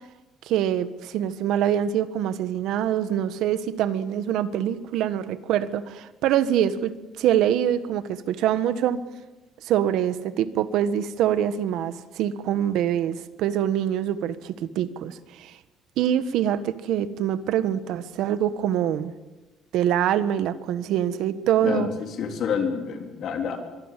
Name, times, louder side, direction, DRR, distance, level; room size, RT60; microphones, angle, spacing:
voice 1, 0.4-6.9 7.2-9.0 9.6-15.6 16.0-19.1 19.7-21.9, right 10 dB, 70° right, 1.4 m, -24 dB
voice 2, 22.2-23.6, left 6 dB, 50° left, 3.4 m, -27 dB
24.0 x 24.0 x 7.5 m
cardioid pair, 170°, 0 cm